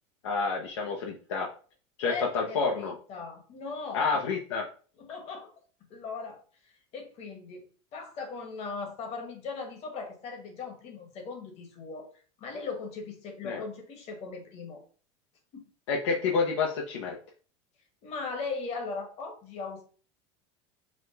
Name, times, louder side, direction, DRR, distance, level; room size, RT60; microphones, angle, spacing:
voice 1, 0.2-1.5 2.0-2.9 3.9-4.7 13.4-13.6 15.9-17.2, left 4 dB, 80° left, 0 dB, 0.8 m, -29 dB
voice 2, 2.1-4.1 5.0-5.5 5.9-7.7 7.9-12.1 12.4-14.8 15.5-15.6 18.0-19.8, left 4 dB, 45° left, 4 dB, 1.3 m, -38 dB
5.1 x 2.2 x 3.8 m, 0.40 s
supercardioid pair, 110°, 15 cm